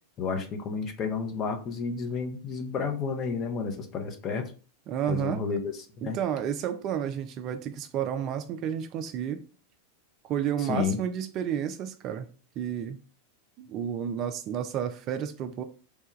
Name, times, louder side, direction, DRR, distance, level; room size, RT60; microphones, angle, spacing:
voice 1, 0.2-4.5 5.1-5.6 6.0-6.2 10.6-11.0, left 5 dB, 30° left, 0.6 m, -31 dB
voice 2, 4.9-5.4 6.0-9.4 10.2-12.3 12.6-13.0 13.6-15.6, right 9 dB, 35° right, 0.3 m, -31 dB
3.3 x 2.2 x 3.0 m
figure-of-eight pair, 90°, 0 cm